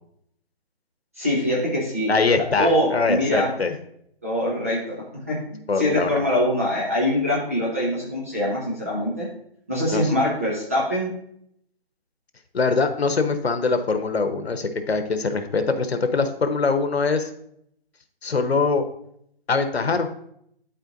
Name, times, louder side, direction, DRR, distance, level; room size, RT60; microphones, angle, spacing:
voice 1, 1.2-2.1 2.6-3.5 4.2-9.3 9.7-11.1, left 1 dB, 15° right, -6 dB, 0.7 m, -23 dB
voice 2, 2.1-3.7 5.7-6.2 9.9-10.1 12.5-17.3 18.2-18.9 19.5-20.1, left 4 dB, 90° left, 8 dB, 1.0 m, -23 dB
11.5 x 4.4 x 2.6 m, 0.71 s
hypercardioid pair, 170°, 31 cm